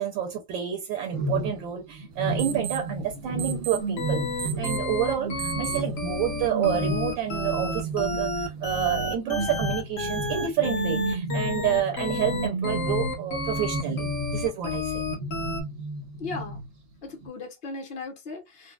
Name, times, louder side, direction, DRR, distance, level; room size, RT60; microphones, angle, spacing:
voice 1, 0.0-14.0 14.3-15.0, right 10 dB, 75° right, 1.4 m, -29 dB
sound 1, 1.1-14.7 15.0-16.9 17.2-17.3, right 2 dB, 50° right, 0.9 m, -33 dB
sound 2, 2.1-8.6, right 13 dB, 90° right, 0.7 m, -40 dB
sound 3, 4.0-15.6, left 2 dB, 50° left, 1.2 m, -31 dB
voice 2, 16.2-16.6 17.0-18.7, left 3 dB, 80° left, 0.5 m, -37 dB
4.2 x 2.0 x 2.3 m
omnidirectional pair, 2.2 m